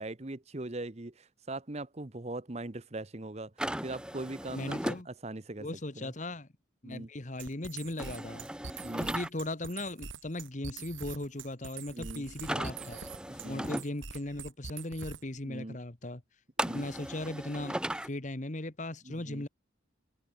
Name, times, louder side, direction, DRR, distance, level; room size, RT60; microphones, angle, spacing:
voice 1, 0.0-3.5 3.8-4.8 5.1-5.7 5.9-6.1 6.8-7.1 8.8-9.1 11.9-12.3 13.3-13.7 15.4-15.8 16.6-16.8 19.0-19.4, right 2 dB, 35° right, 1.0 m, -40 dB
sound 1, 3.6-5.0 8.0-9.3 12.4-13.8 16.6-18.1, right 1 dB, 5° right, 1.1 m, -36 dB
voice 2, 4.5-5.1 5.6-6.5 6.8-8.5 9.0-13.0 13.3-16.2 16.7-19.5, left 1 dB, 40° left, 1.4 m, -38 dB
sound 2, 7.4-15.4, right 5 dB, 90° right, 3.2 m, -44 dB
head